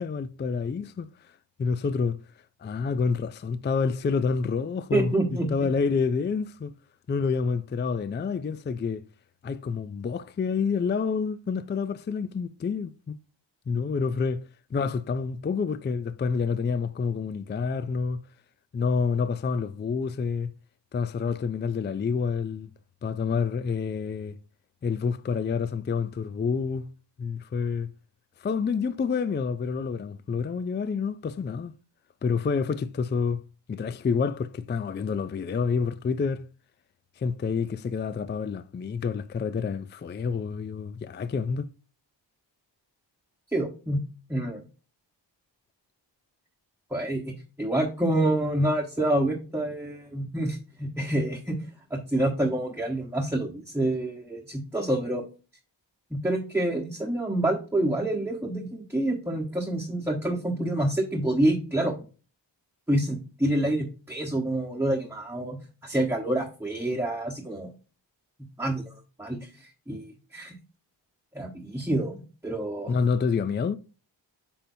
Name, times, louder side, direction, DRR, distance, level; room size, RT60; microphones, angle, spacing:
voice 1, 0.0-1.3 1.6-2.2 2.6-5.1 5.5-6.7 7.1-9.0 9.4-13.1 13.7-18.2 18.7-20.5 20.9-22.7 23.0-24.4 24.8-26.9 27.2-27.9 28.4-31.7 32.2-33.4 33.7-36.5 37.2-41.7 72.9-73.8, left 5 dB, 25° left, 0.4 m, -28 dB
voice 2, 4.9-5.5 43.5-44.0 44.3-44.6 46.9-51.6 51.9-55.2 56.1-61.9 62.9-67.7 68.6-70.5 71.3-73.0, right 1 dB, 5° right, 1.1 m, -27 dB
8.6 x 5.3 x 2.7 m
wide cardioid pair, 105°, 45 cm